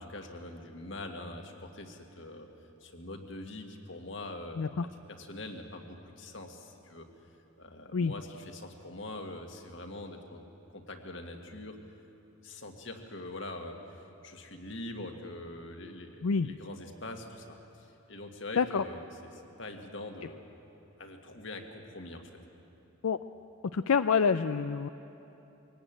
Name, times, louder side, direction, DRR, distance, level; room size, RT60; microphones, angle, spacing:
voice 1, 0.0-2.5 2.8-4.7 5.1-7.1 7.6-10.4 10.7-11.8 12.4-20.5 21.0-22.3, left 2 dB, 60° left, 4 dB, 2.0 m, -43 dB
voice 2, 4.6-4.9 7.9-8.1 16.2-16.5 18.6-18.8 23.0-23.2 23.7-24.9, left 5 dB, 85° left, 11 dB, 0.5 m, -27 dB
23.0 x 18.5 x 9.1 m, 2.9 s
head